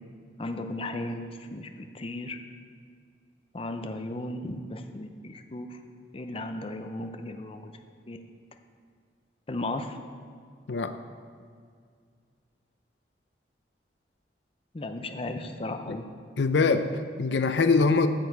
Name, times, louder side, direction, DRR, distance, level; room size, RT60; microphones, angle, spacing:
voice 1, 0.4-2.4 3.5-5.8 6.1-7.7 8.1-8.2 9.5-10.0 14.7-16.0, left 2 dB, 35° left, 6 dB, 0.6 m, -35 dB
voice 2, 16.4-18.1, left 4 dB, 85° left, 9 dB, 0.5 m, -23 dB
12.5 x 7.1 x 4.7 m, 2.1 s
head